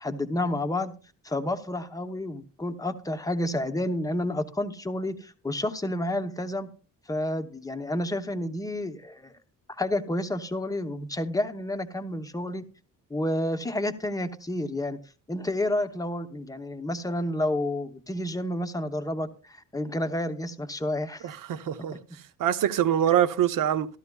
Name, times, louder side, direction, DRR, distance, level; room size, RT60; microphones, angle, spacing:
voice 1, 0.0-0.9 1.2-6.7 7.1-9.3 9.8-12.6 13.1-15.0 15.3-21.3 22.1-22.2, left 1 dB, 10° left, 0.7 m, -30 dB
voice 2, 21.2-22.0 22.4-23.9, right 10 dB, 70° right, 0.8 m, -24 dB
14.5 x 12.5 x 2.2 m
cardioid pair, 150°, 33 cm